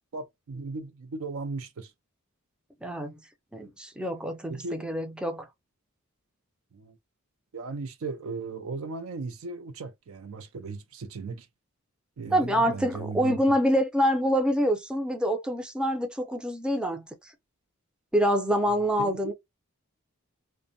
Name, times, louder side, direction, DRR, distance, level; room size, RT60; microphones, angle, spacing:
voice 1, 0.1-1.9 4.5-4.9 6.7-7.0 7.5-11.5 12.2-13.4 18.7-19.3, right 3 dB, 80° right, 0.5 m, -37 dB
voice 2, 2.8-3.2 3.5-5.5 12.3-17.3 18.1-19.3, equal, 5° right, 0.4 m, -26 dB
2.5 x 2.1 x 2.5 m
head